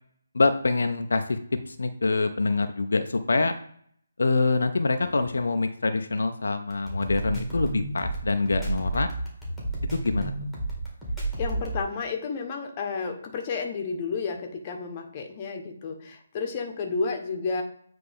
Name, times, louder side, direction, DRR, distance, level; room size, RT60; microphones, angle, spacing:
voice 1, 0.3-1.4 1.7-3.5 4.2-9.1 9.9-10.3, left 3 dB, 75° left, 7 dB, 0.5 m, -25 dB
sound 1, 6.7-11.8, right 2 dB, ahead, 1.8 m, -31 dB
voice 2, 11.4-17.6, left 4 dB, 30° left, 3 dB, 1.0 m, -31 dB
8.7 x 3.3 x 3.5 m, 0.63 s
figure-of-eight pair, 155°, 0 cm